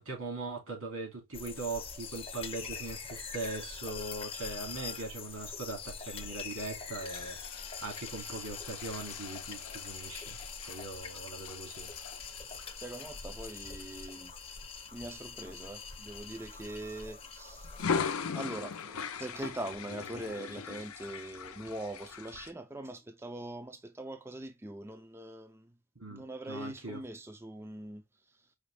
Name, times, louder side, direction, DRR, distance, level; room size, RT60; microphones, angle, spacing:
voice 1, 0.0-11.9 26.0-27.0, right 3 dB, 85° right, 2.5 m, -40 dB
sound 1, 1.3-17.9, left 5 dB, 25° left, 0.7 m, -44 dB
sound 2, 7.1-14.9 15.4-15.6 16.0-17.1 17.6-22.5, left 6 dB, 90° left, 0.5 m, -40 dB
voice 2, 12.8-14.3 14.9-17.8 18.3-25.8 26.1-28.5, right 1 dB, 10° right, 0.4 m, -42 dB
5.0 x 3.0 x 3.2 m
head